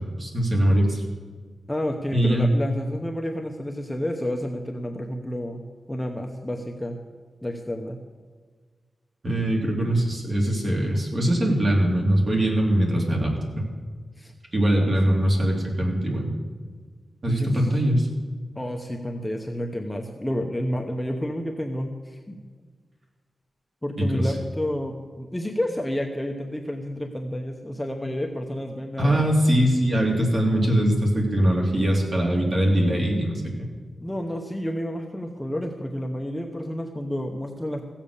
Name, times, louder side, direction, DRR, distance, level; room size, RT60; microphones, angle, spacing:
voice 1, 0.2-1.0 2.1-2.5 9.2-13.6 14.5-16.3 17.2-18.1 24.0-24.3 29.0-33.3, right 1 dB, 40° right, -1 dB, 2.9 m, -22 dB
voice 2, 1.7-5.6 5.9-7.0 7.4-8.0 14.2-14.3 14.7-14.9 17.3-17.7 18.6-22.4 23.8-29.3 34.0-37.8, equal, 10° left, 2 dB, 0.9 m, -30 dB
16.0 x 7.4 x 6.7 m, 1.5 s
wide cardioid pair, 135°, 0 cm